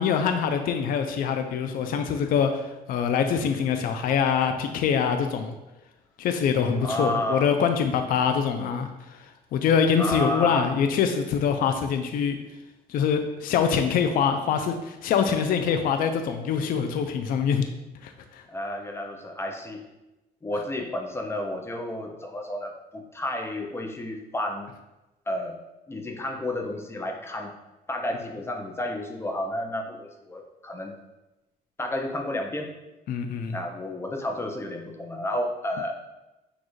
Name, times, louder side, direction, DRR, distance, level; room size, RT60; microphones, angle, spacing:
voice 1, 0.0-5.5 6.2-9.2 9.5-12.4 12.9-17.7 18.0-18.4 33.1-33.6, left 7 dB, 60° left, 7 dB, 0.4 m, -24 dB
voice 2, 6.8-7.5 10.0-10.7 18.5-19.8 20.4-24.7 25.3-25.6 25.9-27.5 27.9-30.9 31.8-32.7 33.5-35.9, left 1 dB, 15° left, 3 dB, 0.6 m, -31 dB
6.3 x 2.4 x 3.1 m, 1.0 s
cardioid pair, 110°, 17 cm